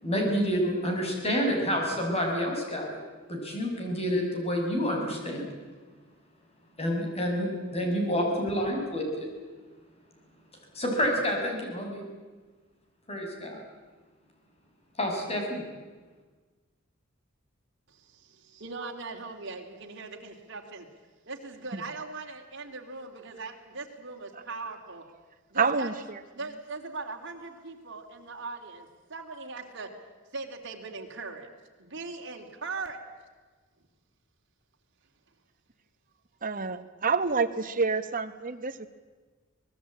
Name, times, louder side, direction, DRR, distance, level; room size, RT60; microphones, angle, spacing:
voice 1, 0.0-3.0 3.3-5.5 6.8-9.3 10.7-12.0 13.1-13.6 15.0-15.6, equal, 30° left, 2 dB, 5.9 m, -28 dB
voice 2, 17.9-20.9 21.3-25.0 25.5-25.9 26.3-29.9 30.3-31.5 31.8-33.0, right 3 dB, 60° right, 2 dB, 3.2 m, -40 dB
voice 3, 25.5-26.2 36.4-38.9, right 4 dB, 45° right, 8 dB, 1.3 m, -28 dB
24.5 x 19.5 x 8.7 m, 1.4 s
head